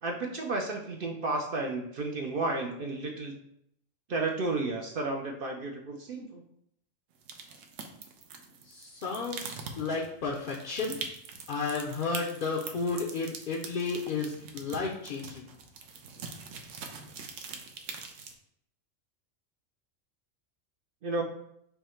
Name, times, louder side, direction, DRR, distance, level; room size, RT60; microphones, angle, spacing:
voice 1, 0.0-3.4 4.1-6.4 21.0-21.2, right 3 dB, 60° right, 2 dB, 0.6 m, -32 dB
sound 1, 7.2-18.4, right 5 dB, 75° right, 1.0 m, -43 dB
voice 2, 8.6-11.0 11.5-15.5, left 4 dB, 55° left, -2 dB, 0.6 m, -33 dB
5.5 x 2.1 x 4.3 m, 0.73 s
omnidirectional pair, 1.4 m